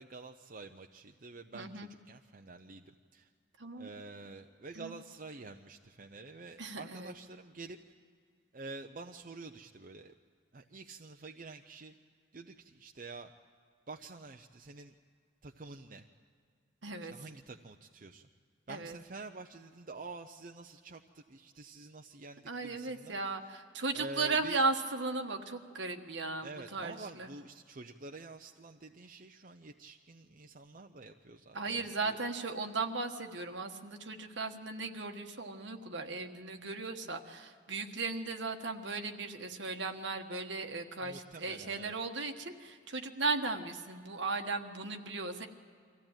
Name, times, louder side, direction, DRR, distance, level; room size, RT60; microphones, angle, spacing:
voice 1, 0.0-3.3 3.8-7.8 8.5-10.1 10.5-11.9 12.3-13.3 13.9-15.0 15.4-16.1 17.0-18.3 18.7-23.2 23.4-23.6 23.9-24.6 26.4-32.2 41.0-41.9, right 3 dB, 45° right, 4 dB, 0.6 m, -48 dB
voice 2, 1.5-1.9 3.6-3.9 4.7-4.9 6.6-7.1 16.8-17.1 18.7-19.0 22.5-27.3 31.5-45.5, right 3 dB, 70° right, 5 dB, 1.4 m, -36 dB
23.5 x 15.5 x 9.0 m, 2.3 s
head